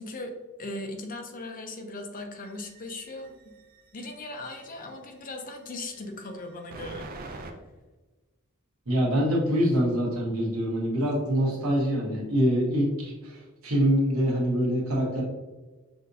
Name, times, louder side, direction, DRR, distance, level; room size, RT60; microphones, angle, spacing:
voice 1, 0.0-3.4 3.9-7.1, left 2 dB, 40° left, 4 dB, 0.6 m, -38 dB
sound 1, 2.4-4.9 5.7-7.5, right 3 dB, 45° right, 0.4 m, -44 dB
voice 2, 8.9-15.2, equal, 90° right, -3 dB, 1.2 m, -25 dB
5.8 x 2.6 x 2.6 m, 1.2 s
head